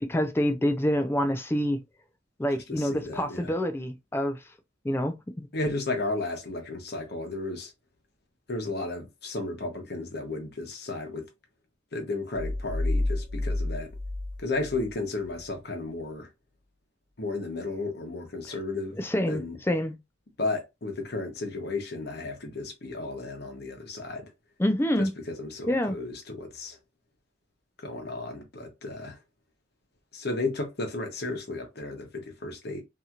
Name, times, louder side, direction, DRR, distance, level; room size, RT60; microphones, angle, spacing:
voice 1, 0.0-1.8 2.4-4.4 4.8-5.5 19.0-20.0 24.6-25.1 25.7-26.0, equal, 15° left, 0.4 m, -27 dB
voice 2, 2.7-3.5 5.5-7.7 8.5-11.3 11.9-13.9 14.4-16.3 17.2-19.0 19.3-19.6 20.4-24.3 25.0-26.8 27.8-29.2 30.1-32.8, left 2 dB, 60° left, 0.9 m, -33 dB
sound 1, 12.3-15.0, left 2 dB, 80° right, 1.3 m, -30 dB
2.9 x 2.7 x 2.4 m
head